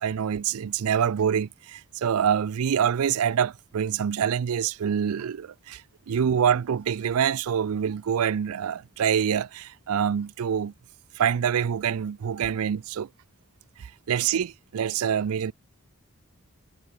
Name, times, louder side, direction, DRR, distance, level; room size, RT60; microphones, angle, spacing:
voice 1, 0.0-10.7 11.2-13.1 13.8-15.5, right 8 dB, 80° right, 0.4 m, -26 dB
head